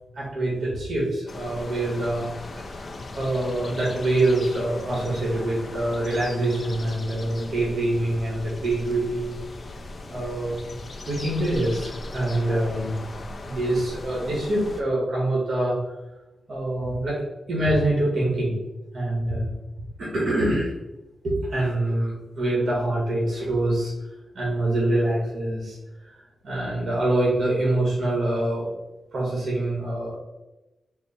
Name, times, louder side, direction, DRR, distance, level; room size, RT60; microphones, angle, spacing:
voice 1, 0.1-2.3 2.6-2.9 3.1-9.3 10.1-10.8 11.1-12.9 13.4-15.8 16.5-17.2 17.5-18.6 18.9-19.5 20.0-20.7 21.2-23.9 24.3-25.8 26.1-28.7 29.1-30.2, right 1 dB, 60° right, -5 dB, 1.5 m, -25 dB
sound 1, 1.3-14.8, left 2 dB, 45° left, 0.6 m, -38 dB
4.5 x 2.1 x 4.2 m, 1.0 s
cardioid pair, 90°, 0 cm